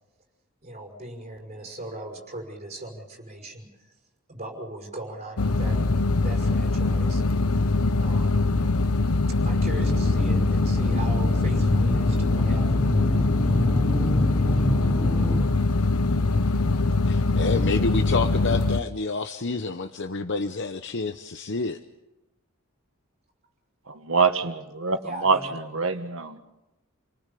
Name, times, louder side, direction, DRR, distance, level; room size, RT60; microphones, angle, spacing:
voice 1, 0.6-3.9 4.3-5.8 6.2-7.7 8.0-8.5 9.4-12.9 25.0-25.5, right 1 dB, 35° right, 5.6 m, -39 dB
sound 1, 5.4-18.8, left 3 dB, 85° left, 0.8 m, -23 dB
sound 2, 9.9-15.5, equal, 5° left, 0.9 m, -29 dB
voice 2, 17.1-21.8, left 3 dB, 55° left, 0.8 m, -28 dB
voice 3, 23.9-26.4, right 4 dB, 65° right, 1.8 m, -25 dB
29.0 x 19.0 x 6.9 m
head